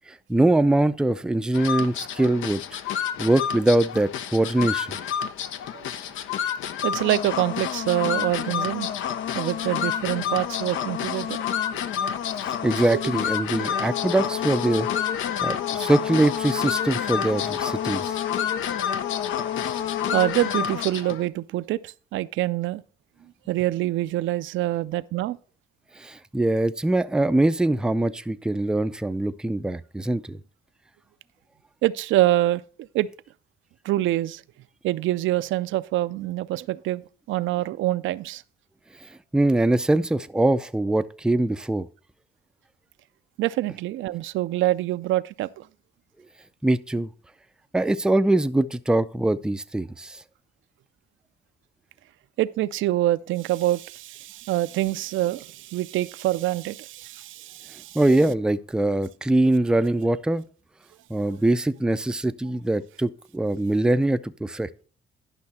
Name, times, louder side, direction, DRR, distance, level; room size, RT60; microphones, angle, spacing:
voice 1, 0.1-2.6 3.2-5.0 12.4-18.2 26.0-30.4 39.3-41.9 46.6-47.1 47.7-50.2 57.9-60.4 61.1-64.7, right 2 dB, 5° right, 0.4 m, -23 dB
sound 1, 1.5-21.2, left 9 dB, 80° left, 0.6 m, -28 dB
voice 2, 6.8-8.9 9.3-11.4 11.7-11.8 13.6-13.7 20.1-22.8 23.5-25.4 31.8-32.6 32.9-33.1 33.8-34.4 34.8-37.0 37.3-38.4 43.4-45.7 52.4-58.0, right 15 dB, 75° right, 0.4 m, -25 dB
10.5 x 5.7 x 4.2 m
cardioid pair, 90°, 20 cm